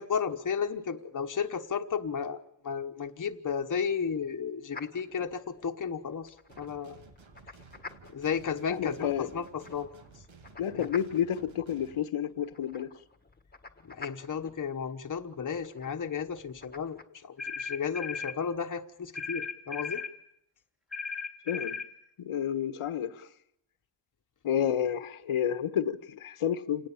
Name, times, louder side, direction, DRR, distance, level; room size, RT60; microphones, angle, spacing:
voice 1, 0.0-2.4 2.6-6.3 6.6-7.0 8.1-9.9 10.7-10.9 13.8-20.0, left 6 dB, 40° left, 5 dB, 1.2 m, -33 dB
sound 1, 4.7-17.0, left 4 dB, 20° left, 1.5 m, -51 dB
sound 2, 6.5-12.0, right 5 dB, 70° right, 2.9 m, -55 dB
voice 2, 8.7-9.3 10.6-12.9 21.5-21.8 22.2-23.3 24.4-26.9, left 9 dB, 90° left, 9 dB, 1.4 m, -30 dB
sound 3, 17.4-18.4 19.2-20.1 20.9-21.9, left 5 dB, ahead, 2.3 m, -36 dB
28.0 x 18.5 x 7.2 m, 0.76 s
wide cardioid pair, 165°, 49 cm